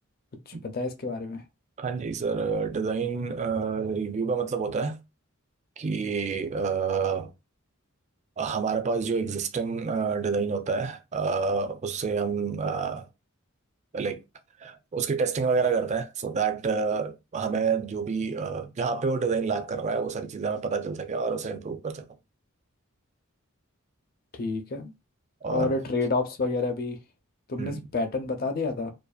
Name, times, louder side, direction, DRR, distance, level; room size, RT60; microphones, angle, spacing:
voice 1, 0.6-1.4 24.3-24.9 25.5-27.0 27.5-28.9, left 3 dB, 45° left, 0.5 m, -29 dB
voice 2, 1.8-5.0 5.8-7.3 8.4-13.1 13.9-14.2 14.6-22.1 25.4-25.7 27.6-27.8, right 5 dB, 35° right, 0.4 m, -28 dB
2.5 x 2.3 x 2.3 m
head